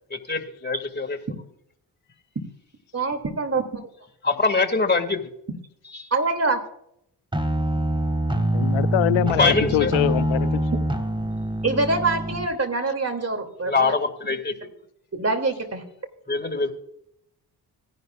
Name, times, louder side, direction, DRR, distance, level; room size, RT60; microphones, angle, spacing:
voice 1, 0.1-1.2 4.2-5.2 6.0-6.1 9.4-9.9 13.6-14.7 16.3-16.7, left 3 dB, 20° left, 2.3 m, -23 dB
voice 2, 2.9-3.8 6.1-6.6 11.6-13.9 15.1-15.8, right 3 dB, 35° right, 3.0 m, -25 dB
sound 1, 7.3-12.5, right 1 dB, 10° right, 2.1 m, -25 dB
voice 3, 8.5-10.6, left 14 dB, 90° left, 0.7 m, -23 dB
17.5 x 11.0 x 2.6 m
supercardioid pair, 50°, 45 cm